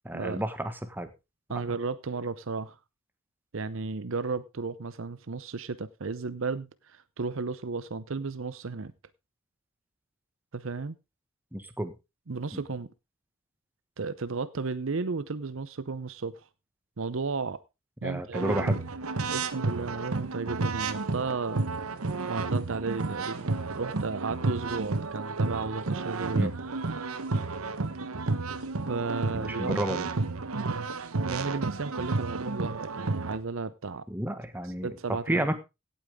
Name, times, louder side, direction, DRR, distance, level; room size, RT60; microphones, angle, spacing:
voice 1, 0.0-1.1 11.5-11.9 12.5-12.6 18.0-18.8 26.4-26.5 29.3-30.1 34.1-34.9 35.3-35.6, right 1 dB, 10° right, 1.5 m, -31 dB
voice 2, 1.5-2.8 3.5-8.9 10.5-11.0 12.3-12.9 14.0-16.5 17.0-17.6 18.0-18.6 19.3-21.6 22.2-23.5 23.7-26.5 28.9-30.0 30.5-34.0 34.8-35.6, right 4 dB, 65° right, 0.7 m, -34 dB
sound 1, 18.3-33.4, right 3 dB, 85° right, 1.1 m, -31 dB
17.0 x 8.6 x 3.6 m
head